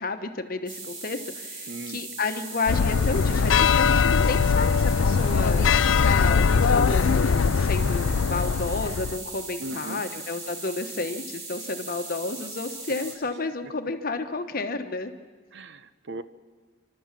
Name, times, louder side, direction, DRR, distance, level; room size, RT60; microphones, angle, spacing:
voice 1, 0.0-5.7 6.0-15.1, left 3 dB, 50° left, 8 dB, 1.1 m, -31 dB
sound 1, 0.7-13.1, right 3 dB, 80° right, 3.7 m, -39 dB
voice 2, 1.7-2.0 9.6-10.0 15.5-16.2, right 2 dB, 65° right, 13 dB, 0.8 m, -37 dB
sound 2, 2.7-9.2, left 5 dB, 80° left, 0.5 m, -21 dB
28.0 x 12.5 x 7.4 m, 1.5 s
head